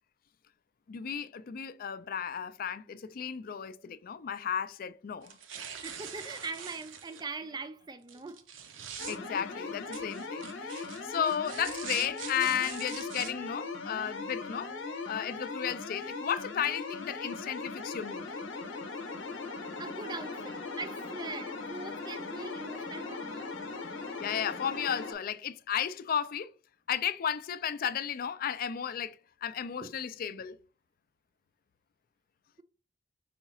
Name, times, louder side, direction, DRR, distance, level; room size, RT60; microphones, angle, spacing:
voice 1, 0.9-5.4 9.1-18.3 24.2-26.5 26.9-30.6, left 8 dB, 50° left, 0.4 m, -34 dB
sound 1, 5.2-7.2 8.1-9.2 9.9-13.3, right 8 dB, 85° right, 0.6 m, -44 dB
voice 2, 5.8-8.4 19.6-23.5 29.8-29.9, right 4 dB, 20° right, 0.4 m, -42 dB
sound 2, 9.0-25.1, left 3 dB, 80° left, 0.8 m, -39 dB
5.0 x 2.3 x 4.1 m
head